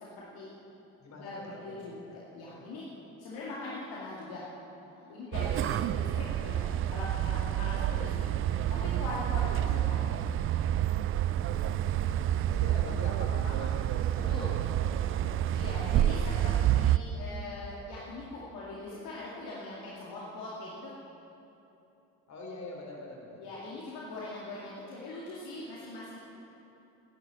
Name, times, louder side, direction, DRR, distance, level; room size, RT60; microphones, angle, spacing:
voice 1, 0.2-0.5 1.2-2.0 2.3-2.9 3.2-4.4 5.0-10.0 14.2-14.5 15.5-16.2 16.4-20.9 23.4-26.2, left 2 dB, 55° left, -6 dB, 2.4 m, -41 dB
voice 2, 1.0-2.2 12.2-15.5 15.8-16.6 22.3-23.4, left 2 dB, 40° left, -1 dB, 3.6 m, -46 dB
sound 1, 5.3-17.0, right 11 dB, 30° right, 0.4 m, -28 dB
13.0 x 10.5 x 7.2 m, 3.0 s
figure-of-eight pair, 50°, 43 cm